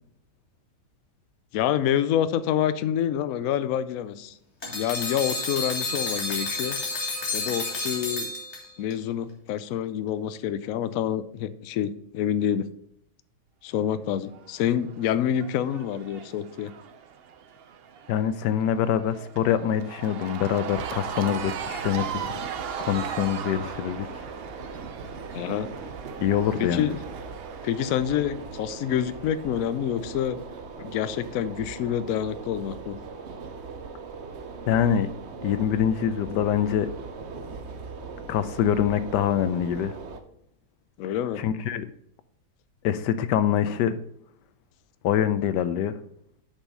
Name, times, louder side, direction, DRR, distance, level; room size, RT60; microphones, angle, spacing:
voice 1, 1.5-4.3 4.7-6.8 7.3-8.3 8.8-12.7 13.6-16.7 25.3-25.7 26.6-27.0 27.6-30.4 30.8-33.0 41.0-41.4, left 10 dB, 65° left, 13 dB, 0.9 m, -27 dB
sound 1, 4.6-8.9, left 3 dB, 40° left, 2.1 m, -30 dB
Cheering / Crowd, 14.3-29.6, right 8 dB, 75° right, 0.5 m, -39 dB
voice 2, 18.1-22.4 22.8-24.1 26.2-26.9 34.7-35.1 35.4-36.9 38.3-39.9 41.4-41.9 42.8-44.0 45.0-45.9, left 9 dB, 85° left, 13 dB, 1.2 m, -25 dB
sound 2, 20.7-40.2, right 4 dB, 50° right, 0.9 m, -39 dB
7.2 x 5.5 x 5.4 m, 0.70 s
omnidirectional pair, 1.8 m